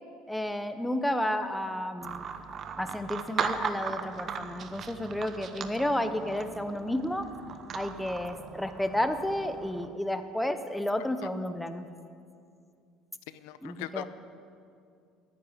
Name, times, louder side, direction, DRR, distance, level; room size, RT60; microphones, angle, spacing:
voice 1, 0.3-2.2 2.8-7.3 7.7-11.9 13.6-14.0, left 1 dB, 5° left, 9 dB, 0.7 m, -31 dB
sound 1, 2.0-9.9, right 6 dB, 30° right, 0.9 m, -38 dB
voice 2, 13.3-14.0, left 16 dB, 90° left, 14 dB, 0.7 m, -40 dB
14.0 x 10.5 x 9.7 m, 2.4 s
cardioid pair, 160°, 0 cm